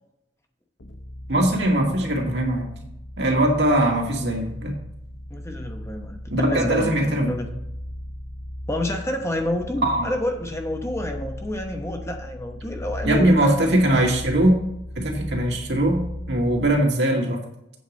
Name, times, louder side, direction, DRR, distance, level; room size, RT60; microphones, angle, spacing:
sound 1, 0.8-16.9, equal, 85° left, 0.8 m, -37 dB
voice 1, 1.3-2.8 3.2-4.8 6.3-7.3 9.8-10.1 13.0-14.5 15.0-16.0 16.3-17.4, right 1 dB, 65° right, 0 dB, 2.2 m, -21 dB
voice 2, 5.3-7.4 8.7-13.9, left 1 dB, 15° left, 3 dB, 0.9 m, -28 dB
8.4 x 4.8 x 7.2 m, 0.83 s
head